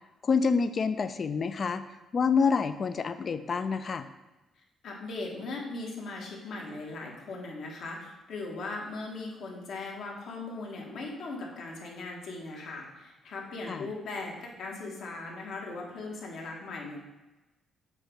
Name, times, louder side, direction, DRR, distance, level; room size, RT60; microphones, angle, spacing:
voice 1, 0.2-4.1 13.7-13.9, left 5 dB, 45° left, 11 dB, 0.3 m, -27 dB
voice 2, 4.8-17.0, left 3 dB, 70° left, -1 dB, 1.4 m, -39 dB
7.0 x 3.0 x 5.1 m, 1.1 s
cardioid pair, 90°, 0 cm